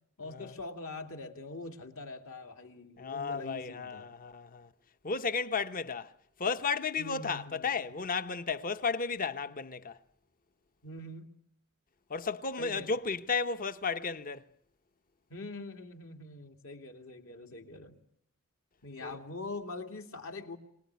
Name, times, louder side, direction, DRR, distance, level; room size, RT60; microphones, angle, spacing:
voice 1, 0.2-4.1 7.0-7.8 10.8-11.3 12.6-13.0 15.3-18.0 18.8-20.6, left 2 dB, 65° left, 2.5 m, -43 dB
voice 2, 3.0-4.7 5.0-6.1 6.4-10.0 12.1-14.5 19.0-19.1, left 5 dB, 40° left, 0.9 m, -33 dB
24.5 x 19.0 x 9.4 m
head